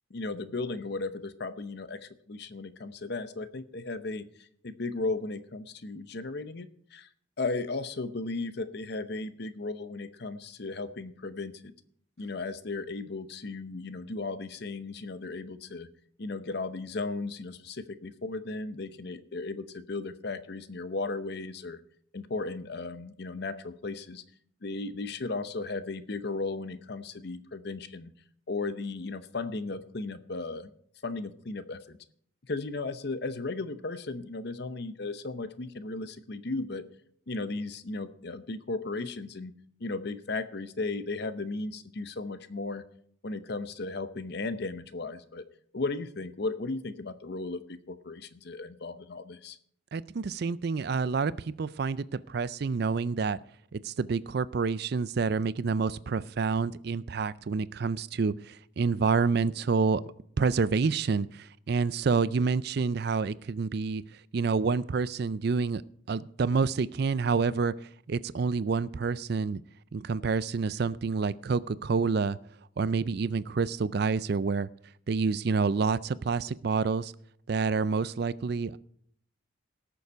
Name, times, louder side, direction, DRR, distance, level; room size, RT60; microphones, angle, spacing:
voice 1, 0.1-4.2 4.6-7.1 7.4-11.6 12.2-15.9 16.2-21.8 22.1-24.2 24.6-28.1 28.5-30.7 31.0-32.0 32.5-36.8 37.3-39.5 39.8-42.8 43.2-45.4 45.7-49.6, left 3 dB, 50° left, 0.7 m, -35 dB
voice 2, 49.9-53.4 53.7-60.0 60.4-65.8 66.1-69.6 69.9-72.4 72.8-74.7 75.1-77.1 77.5-78.8, right 4 dB, 50° right, 0.4 m, -28 dB
18.0 x 7.0 x 4.6 m
head